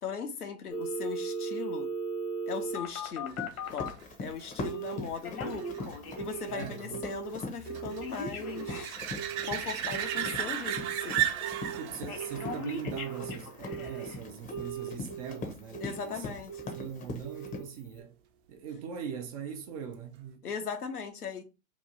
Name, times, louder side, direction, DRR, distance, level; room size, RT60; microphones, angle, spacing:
voice 1, 0.0-1.9 2.5-3.4 3.7-3.9 4.2-5.7 6.2-9.0 9.4-11.2 15.8-16.8 20.4-21.4, left 6 dB, 90° left, 0.8 m, -38 dB
Telephone, 0.7-4.0 4.6-5.0 5.2-6.6 6.9-7.3 7.7-11.0 11.4-11.8 12.1-14.1 14.5-15.4 15.7-16.1 16.5-16.9 17.2-17.6 18.0-18.1, right 3 dB, 70° left, 1.1 m, -38 dB
sound 1, 3.0-14.3 19.9-20.0, right 11 dB, 50° right, 0.8 m, -37 dB
Run, 3.3-17.6, left 3 dB, 20° left, 0.6 m, -42 dB
voice 2, 6.5-7.0 11.7-16.3 16.7-18.1 18.5-20.5, right 7 dB, 30° right, 0.3 m, -41 dB
3.0 x 2.4 x 3.8 m
hypercardioid pair, 105°, 44 cm